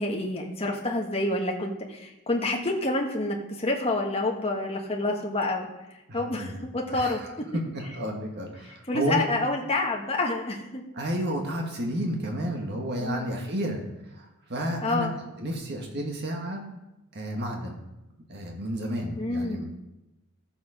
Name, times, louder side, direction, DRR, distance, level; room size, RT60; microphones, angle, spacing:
voice 1, 0.0-5.7 6.1-7.2 8.9-10.8 13.0-13.3 14.8-15.1 19.2-19.6, left 2 dB, 25° left, 0 dB, 1.5 m, -28 dB
voice 2, 6.1-6.6 6.9-9.2 10.9-15.1 15.4-16.6 17.1-17.8 18.3-19.7, right 1 dB, 50° right, 1 dB, 1.6 m, -31 dB
14.0 x 7.3 x 4.9 m, 0.96 s
head